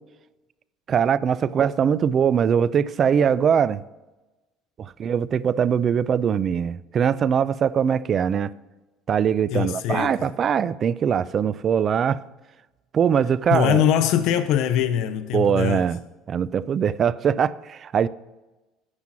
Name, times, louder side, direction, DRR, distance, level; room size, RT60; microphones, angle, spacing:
voice 1, 0.9-3.8 4.8-8.5 9.1-12.2 12.9-13.8 15.3-16.0 16.3-18.1, right 7 dB, 40° right, 0.4 m, -22 dB
voice 2, 9.5-10.3 13.5-15.9, left 10 dB, 70° left, 0.5 m, -22 dB
9.7 x 7.4 x 6.0 m
cardioid pair, 115°, 0 cm